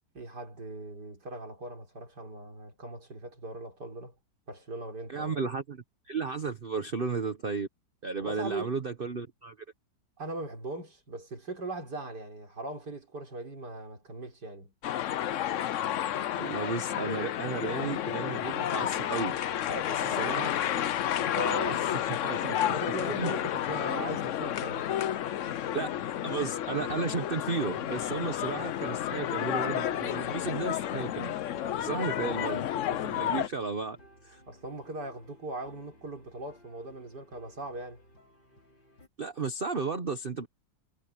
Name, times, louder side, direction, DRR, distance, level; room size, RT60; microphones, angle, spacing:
voice 1, 0.2-4.1 4.5-5.4 8.2-8.8 10.2-14.7 19.7-20.5 22.7-24.9 34.5-38.0, right 2 dB, 60° right, 5.3 m, -40 dB
voice 2, 5.1-7.7 8.0-9.6 16.4-19.4 19.9-20.5 21.3-23.3 25.7-25.9 26.2-31.3 31.8-34.0 34.2-34.4 39.2-40.5, right 4 dB, 35° right, 1.2 m, -34 dB
sound 1, 14.8-33.5, left 11 dB, 70° left, 0.7 m, -31 dB
sound 2, 21.3-39.1, left 2 dB, 85° left, 7.5 m, -60 dB
omnidirectional pair, 2.0 m